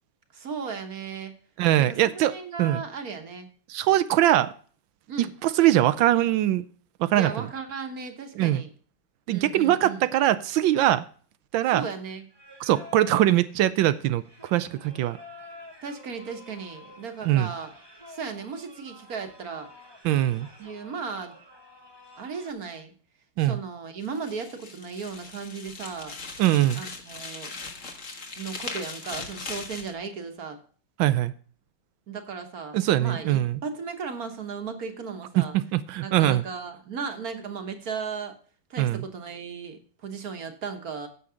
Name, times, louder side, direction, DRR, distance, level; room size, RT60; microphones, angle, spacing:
voice 1, 0.3-1.3 1.8-3.5 5.1-5.3 7.1-8.7 9.3-10.0 11.7-12.3 15.8-17.7 18.1-19.7 20.6-21.4 22.2-22.9 23.4-26.1 26.7-27.5 28.4-30.6 32.1-35.5 36.0-38.4 38.7-41.1, right 5 dB, 50° right, 7 dB, 1.6 m, -36 dB
voice 2, 1.6-2.8 3.7-4.5 5.2-6.6 7.0-7.5 8.4-8.6 9.3-11.0 11.5-11.9 12.6-15.2 17.2-17.5 20.0-20.5 23.4-23.6 26.4-26.8 31.0-31.3 32.7-33.6 35.4-36.4 38.8-39.0, right 13 dB, 80° right, 14 dB, 1.3 m, -22 dB
Singing, 12.3-22.5, left 1 dB, 15° right, 1.4 m, -49 dB
sound 1, 24.0-29.9, left 4 dB, 45° left, 1.7 m, -39 dB
9.5 x 7.2 x 5.0 m, 0.43 s
omnidirectional pair, 2.1 m